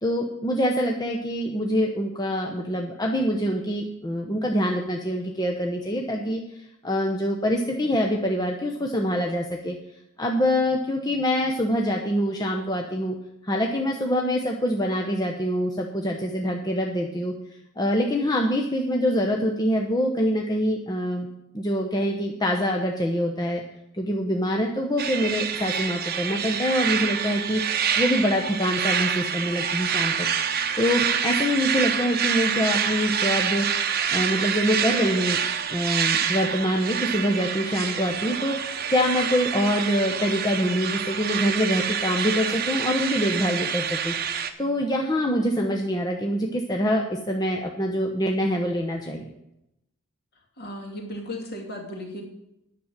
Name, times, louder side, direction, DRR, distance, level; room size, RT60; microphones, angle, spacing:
voice 1, 0.0-9.8 10.2-13.2 13.4-17.3 17.8-21.3 21.5-23.6 23.9-33.7 34.1-35.4 35.7-44.1 44.6-49.3, equal, 20° left, 1 dB, 0.9 m, -25 dB
sound 1, 25.0-44.5, right 7 dB, 45° right, 0.9 m, -27 dB
voice 2, 50.6-52.2, left 1 dB, 45° left, 0 dB, 2.6 m, -35 dB
10.0 x 6.6 x 8.9 m, 0.85 s
head